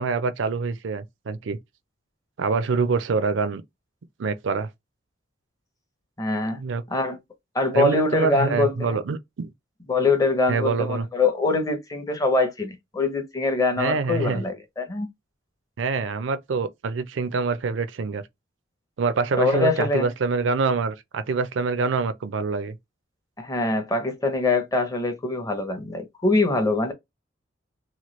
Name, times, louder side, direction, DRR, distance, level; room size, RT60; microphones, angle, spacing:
voice 1, 0.0-1.6 2.4-3.6 4.2-4.7 6.5-6.8 7.7-9.5 10.5-11.1 13.8-14.4 15.8-18.2 19.0-22.8, right 4 dB, 70° right, 0.4 m, -25 dB
voice 2, 6.2-6.6 6.9-7.2 7.5-9.0 9.9-15.1 19.4-20.1 23.4-26.9, left 3 dB, 20° left, 0.6 m, -23 dB
2.9 x 2.3 x 3.0 m
head